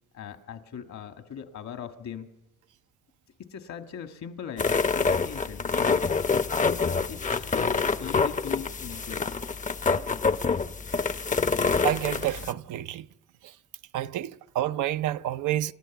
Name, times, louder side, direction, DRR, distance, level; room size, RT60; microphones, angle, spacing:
voice 1, 0.1-2.3 3.5-5.9 6.8-9.3, left 8 dB, 65° left, 1.7 m, -40 dB
sound 1, 4.6-12.5, left 4 dB, 25° left, 0.7 m, -26 dB
voice 2, 11.8-13.1 13.4-13.5 13.9-15.7, right 13 dB, 80° right, 0.7 m, -29 dB
29.0 x 13.0 x 7.1 m
cardioid pair, 90°, 30 cm